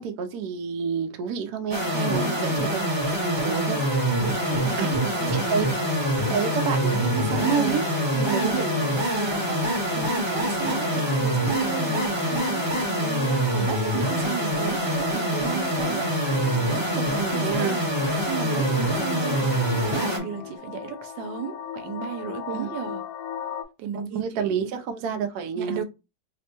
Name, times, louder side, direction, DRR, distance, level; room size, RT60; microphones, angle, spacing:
voice 1, 0.0-3.8 4.8-4.9 5.3-5.8 6.3-7.8 8.2-9.6 17.1-17.8 22.5-22.7 23.9-25.8, right 7 dB, 70° right, 1.0 m, -29 dB
sound 1, 1.7-20.2, equal, 20° right, 0.9 m, -25 dB
voice 2, 2.1-2.5 4.1-5.6 8.1-8.8 9.9-16.1 16.7-17.8 18.3-23.0 23.8-24.7 25.5-25.8, right 8 dB, 90° right, 1.3 m, -34 dB
sound 2, 4.0-20.6, left 5 dB, 55° left, 1.5 m, -40 dB
sound 3, 11.9-23.6, left 9 dB, 90° left, 1.3 m, -40 dB
3.3 x 2.1 x 4.2 m
omnidirectional pair, 1.9 m